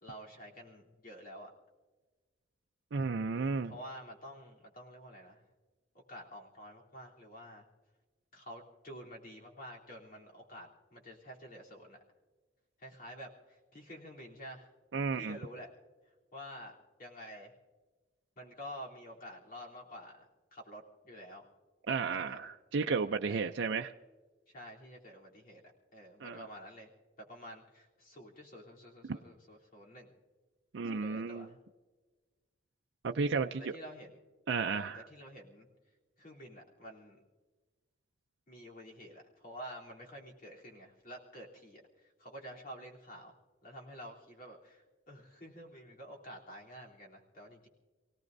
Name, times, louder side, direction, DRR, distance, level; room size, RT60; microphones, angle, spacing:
voice 1, 0.0-1.5 3.3-5.4 6.1-7.6 8.3-12.0 12.8-14.7 15.1-15.7 16.3-17.5 18.4-20.2 20.5-21.5 22.2-22.4 23.3-23.5 24.5-26.9 27.3-30.1 30.8-31.5 33.6-34.1 34.6-35.7 36.2-37.2 38.5-41.8 42.2-43.3 43.6-47.7, equal, 50° left, -2 dB, 3.3 m, -49 dB
voice 2, 2.9-3.7 14.9-15.4 21.9-23.9 26.2-26.4 29.0-29.2 30.7-31.5 33.0-33.7 34.5-35.1, right 4 dB, 85° right, 5 dB, 0.5 m, -33 dB
29.0 x 17.5 x 2.6 m, 1.3 s
head